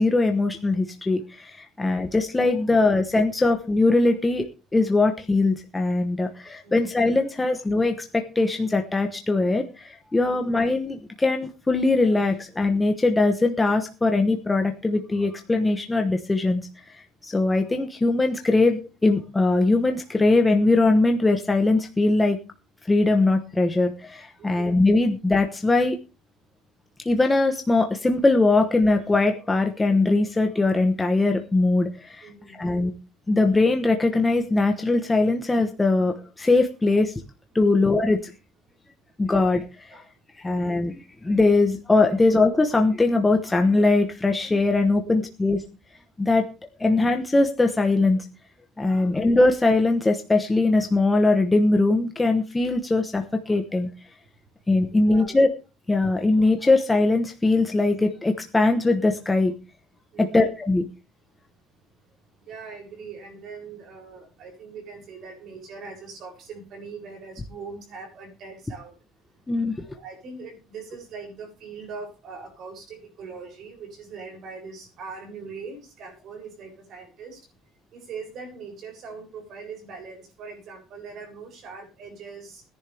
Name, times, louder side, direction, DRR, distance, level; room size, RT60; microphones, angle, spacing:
voice 1, 0.0-16.6 17.2-22.4 22.9-26.0 27.0-32.3 32.6-32.9 33.3-37.1 37.5-38.2 39.2-40.0 40.4-45.6 46.2-46.5 46.8-48.2 48.8-53.9 54.7-55.5 55.9-59.6 60.2-60.9 69.5-69.7, left 2 dB, 10° left, 4 dB, 1.0 m, -21 dB
voice 2, 24.4-24.8 32.2-32.9 37.7-37.9 39.9-40.1 40.4-40.7 45.1-45.2 46.8-46.9 48.9-49.2 55.0-55.4 60.1-60.5 62.4-69.0 69.4-77.5 77.9-82.6, right 5 dB, 45° right, 2 dB, 7.3 m, -41 dB
20.5 x 11.0 x 3.4 m, 0.32 s
cardioid pair, 180°, 0 cm